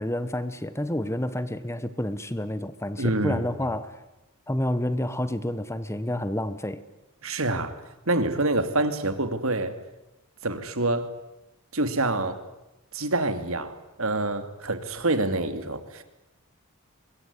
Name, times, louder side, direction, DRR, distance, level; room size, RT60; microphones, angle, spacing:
voice 1, 0.0-4.0 4.5-6.8, left 1 dB, 10° left, 1.2 m, -29 dB
voice 2, 3.0-3.4 7.2-7.7 8.1-9.8 10.4-11.1 11.7-12.4 12.9-16.0, right 2 dB, 65° right, 2.7 m, -26 dB
24.5 x 21.5 x 9.7 m
head